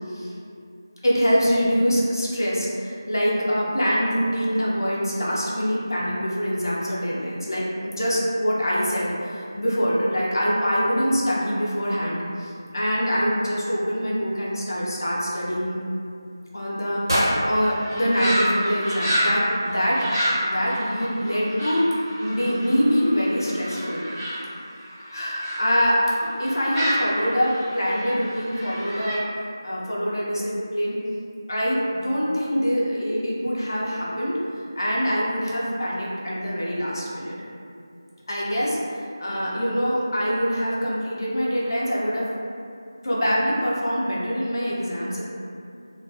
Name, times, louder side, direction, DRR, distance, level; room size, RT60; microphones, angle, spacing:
voice 1, 1.0-15.8 16.5-20.0 20.4-21.9 22.2-24.0 25.1-29.3 29.6-31.0 31.5-34.4 34.8-37.3 38.3-42.3 43.0-45.2, equal, 60° left, -6 dB, 0.6 m, -24 dB
sound 1, 17.1-19.2, equal, 75° right, 0.9 m, -27 dB
sound 2, 17.5-25.6 26.0-29.1, equal, ahead, 0.6 m, -29 dB
2.5 x 2.3 x 2.5 m, 2.4 s
figure-of-eight pair, 170°, 2 cm